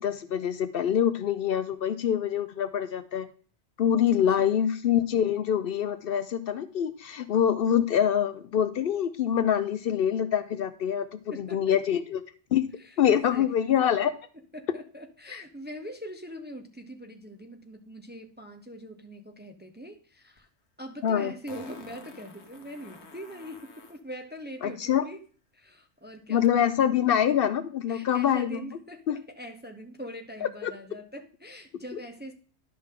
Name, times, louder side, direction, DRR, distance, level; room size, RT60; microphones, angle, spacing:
voice 1, 0.0-3.3 3.8-12.2 12.5-12.7 13.0-14.1 15.3-15.4 21.0-21.3 24.6-25.1 26.3-28.6 29.1-29.2 30.4-30.7, left 9 dB, 65° left, 13 dB, 0.7 m, -25 dB
voice 2, 4.1-4.6 11.3-11.8 12.8-13.0 13.3-13.5 14.5-20.5 20.8-25.3 25.5-26.5 27.9-32.3, equal, 10° right, 5 dB, 0.6 m, -42 dB
Fart, 20.4-20.5 21.5-24.0 26.4-26.5, left 4 dB, 80° left, 1.4 m, -49 dB
11.0 x 5.7 x 3.7 m, 0.43 s
omnidirectional pair, 1.1 m